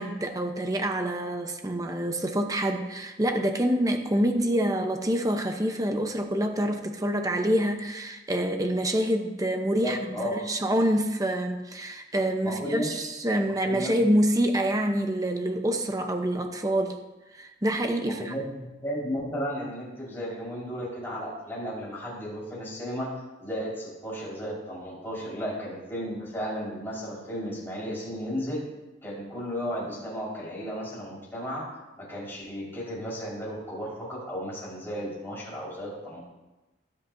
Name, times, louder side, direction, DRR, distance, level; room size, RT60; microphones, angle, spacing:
voice 1, 0.0-10.0 10.3-17.0 17.3-18.3, right 1 dB, 20° right, 5 dB, 0.8 m, -26 dB
voice 2, 9.8-10.3 12.4-13.0 13.5-14.0 18.1-28.6 29.0-36.3, equal, 10° left, -6 dB, 4.5 m, -34 dB
22.0 x 8.5 x 2.7 m, 1.0 s
head